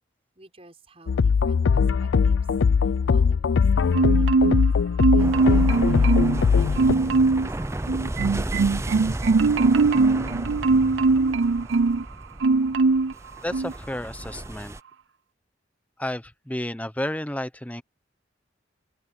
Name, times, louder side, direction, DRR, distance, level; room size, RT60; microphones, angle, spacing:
voice 1, 0.4-2.5 2.8-4.6 5.0-8.3, right 2 dB, 30° right, 5.8 m, -53 dB
sound 1, 1.1-6.9, left 5 dB, 85° left, 0.4 m, -21 dB
Marimba xylophone, 3.9-4.7 5.0-6.4 6.8-7.5 7.9-12.0 12.4-13.1 13.5-13.7, right 3 dB, 85° right, 0.5 m, -21 dB
sound 2, 5.2-14.8, right 1 dB, 15° right, 0.6 m, -33 dB
voice 2, 13.4-14.8 16.0-17.8, left 1 dB, 10° left, 1.0 m, -31 dB
head